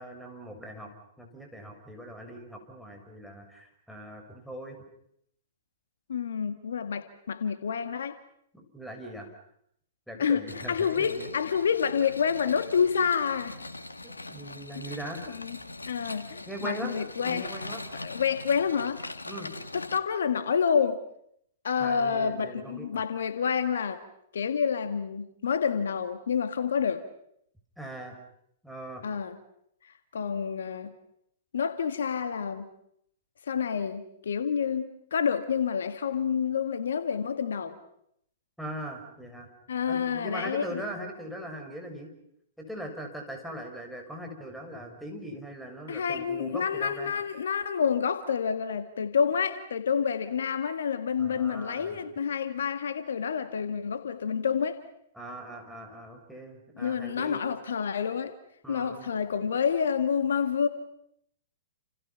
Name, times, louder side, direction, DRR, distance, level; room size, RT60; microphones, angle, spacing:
voice 1, 0.0-4.8 8.5-9.3 10.1-11.3 14.0-15.2 16.5-17.8 19.3-19.5 21.8-22.9 27.8-28.2 28.6-29.0 38.6-39.5 39.9-42.1 42.6-47.1 51.2-52.0 55.1-57.4 58.6-59.1, right 1 dB, ahead, 6.6 m, -40 dB
voice 2, 6.1-8.2 10.2-13.6 15.3-15.6 15.8-17.5 17.9-19.1 19.7-21.0 21.6-24.0 24.3-27.0 29.0-29.4 29.8-30.9 31.5-32.7 33.5-37.8 39.7-40.8 45.9-54.8 56.8-58.3 58.7-60.7, left 6 dB, 70° left, 1.8 m, -28 dB
sound 1, 10.5-20.0, left 2 dB, 90° left, 1.8 m, -41 dB
30.0 x 29.0 x 5.9 m
figure-of-eight pair, 110°, 0 cm